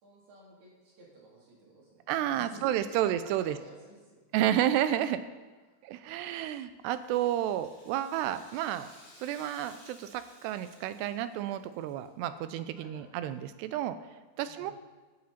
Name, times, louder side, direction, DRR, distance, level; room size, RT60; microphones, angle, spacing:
voice 1, 0.0-2.0 2.3-4.2 12.8-13.1 14.4-14.7, right 3 dB, 65° right, -5 dB, 5.3 m, -51 dB
voice 2, 2.1-3.6 4.3-5.2 5.8-8.9 9.2-14.0 14.4-14.7, right 11 dB, 90° right, 12 dB, 2.8 m, -31 dB
Rattle (instrument), 6.8-12.1 12.4-12.5 13.3-13.4, left 1 dB, 30° left, 3.9 m, -57 dB
16.0 x 9.4 x 4.4 m, 1.3 s
omnidirectional pair, 4.8 m